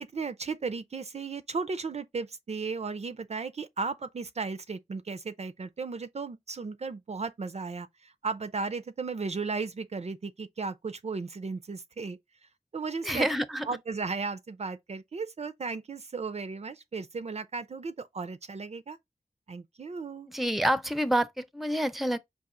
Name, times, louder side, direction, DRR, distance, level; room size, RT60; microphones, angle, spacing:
voice 1, 0.0-12.2 12.7-13.3 13.6-19.0 19.5-20.3, right 4 dB, 55° right, 0.4 m, -35 dB
voice 2, 13.0-13.7 20.3-22.2, equal, ahead, 0.6 m, -28 dB
4.7 x 2.4 x 3.7 m
cardioid pair, 45°, 14 cm